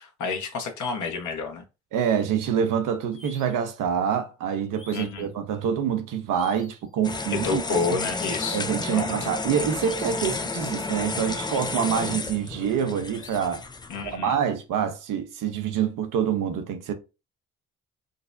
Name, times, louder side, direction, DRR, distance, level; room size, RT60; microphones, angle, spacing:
voice 1, 0.0-1.7 4.9-5.3 7.4-8.6 8.9-9.1 13.9-14.4, left 4 dB, 60° left, 1.1 m, -29 dB
voice 2, 1.9-8.0 8.5-13.6 14.0-16.9, right 8 dB, 65° right, 0.8 m, -26 dB
sound 1, 3.1-3.7 4.7-5.3 6.3-6.9 8.1-8.7 9.8-10.3 11.4-12.0 13.1-13.7, left 2 dB, 40° left, 1.4 m, -50 dB
sound 2, 7.0-14.2, left 3 dB, 15° left, 0.4 m, -32 dB
5.0 x 2.0 x 2.6 m
hypercardioid pair, 50°, 34 cm